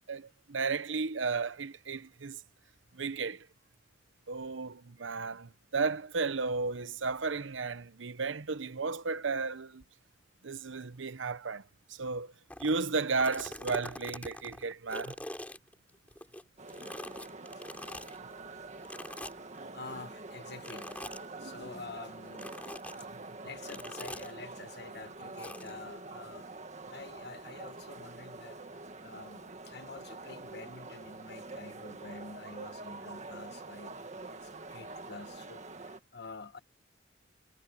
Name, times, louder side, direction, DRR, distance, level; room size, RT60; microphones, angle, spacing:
voice 1, 0.1-2.4 2.9-3.5 4.3-9.8 10.4-11.6 11.9-12.3 12.6-15.2, right 4 dB, 90° right, 0.9 m, -34 dB
sound 1, 12.5-12.8 13.1-16.4 16.7-18.2 18.8-19.6 20.6-21.3 22.3-23.0 23.7-24.3 25.4-25.7, left 1 dB, 10° left, 3.1 m, -43 dB
sound 2, 16.6-36.0, right 3 dB, 40° right, 1.9 m, -46 dB
voice 2, 19.7-20.9 21.4-22.5 23.2-26.5 26.9-28.6 29.0-36.6, left 3 dB, 60° left, 1.4 m, -48 dB
head